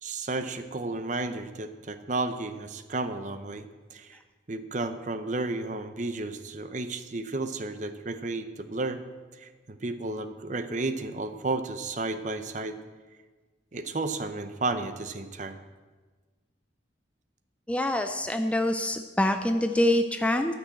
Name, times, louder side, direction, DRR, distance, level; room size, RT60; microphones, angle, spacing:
voice 1, 0.0-3.7 3.9-4.2 4.5-9.0 9.3-12.8 13.7-15.6, right 3 dB, 40° right, 10 dB, 0.6 m, -32 dB
voice 2, 17.7-20.5, left 1 dB, 5° left, 6 dB, 0.4 m, -25 dB
13.0 x 6.2 x 7.6 m, 1.4 s
head